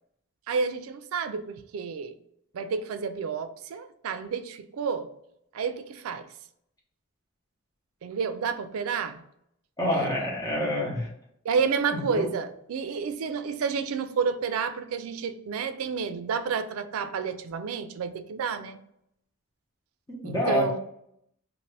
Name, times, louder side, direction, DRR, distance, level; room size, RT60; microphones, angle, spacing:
voice 1, 0.5-2.2 2.5-5.1 5.5-6.3 8.0-9.2 9.9-10.1 11.4-18.8 20.2-20.8, right 6 dB, 85° right, 10 dB, 0.3 m, -30 dB
voice 2, 9.8-11.1 11.9-12.3 20.1-20.7, left 1 dB, 15° left, -4 dB, 0.9 m, -27 dB
2.6 x 2.5 x 3.2 m, 0.74 s
head